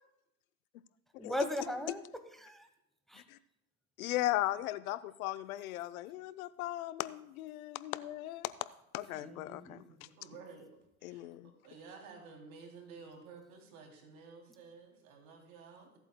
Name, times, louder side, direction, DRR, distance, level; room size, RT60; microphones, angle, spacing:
voice 1, 1.2-2.0 2.3-2.7 3.1-3.2 9.1-9.8, left 1 dB, ahead, 7 dB, 1.1 m, -38 dB
voice 2, 4.0-8.5 8.9-9.8 11.0-11.5, left 15 dB, 90° left, 14 dB, 0.6 m, -37 dB
voice 3, 9.7-10.7 11.0-16.0, right 4 dB, 85° right, 1 dB, 3.0 m, -53 dB
21.5 x 8.2 x 2.2 m, 0.83 s
supercardioid pair, 105°, 41 cm